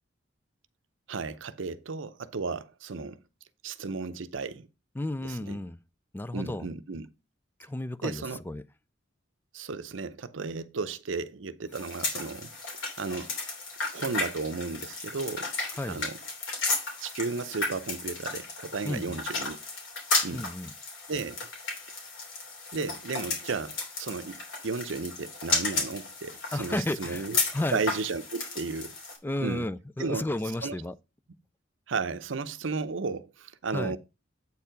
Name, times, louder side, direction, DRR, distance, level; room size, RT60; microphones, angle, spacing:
voice 1, 1.1-3.2 3.6-4.7 5.2-5.6 6.3-7.1 8.0-8.4 9.5-13.4 13.9-15.5 15.9-16.2 17.0-19.6 20.2-20.5 21.1-21.5 22.7-27.4 27.7-28.9 29.4-29.7 30.0-30.2 30.6-30.8 31.9-34.0, right 4 dB, 70° right, 0.6 m, -34 dB
voice 2, 5.0-5.8 6.1-6.7 7.6-8.6 15.8-16.0 18.8-19.1 20.3-20.7 26.5-27.3 27.5-27.8 29.2-30.9 33.7-33.9, left 1 dB, 10° left, 0.3 m, -32 dB
sound 1, 11.7-29.2, left 3 dB, 75° left, 3.0 m, -34 dB
8.3 x 4.6 x 5.0 m
head